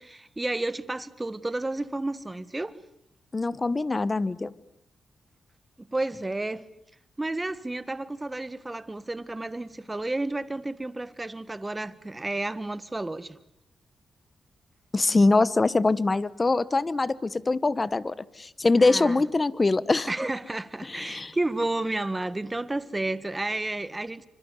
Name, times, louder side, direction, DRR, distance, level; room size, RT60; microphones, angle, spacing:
voice 1, 0.0-2.8 5.9-6.6 7.2-13.4 18.8-19.2 20.1-24.3, right 2 dB, 15° right, 1.6 m, -31 dB
voice 2, 3.3-4.5 14.9-20.1 20.9-21.3, left 3 dB, 30° left, 1.2 m, -23 dB
27.5 x 25.5 x 8.5 m
cardioid pair, 85°, 0 cm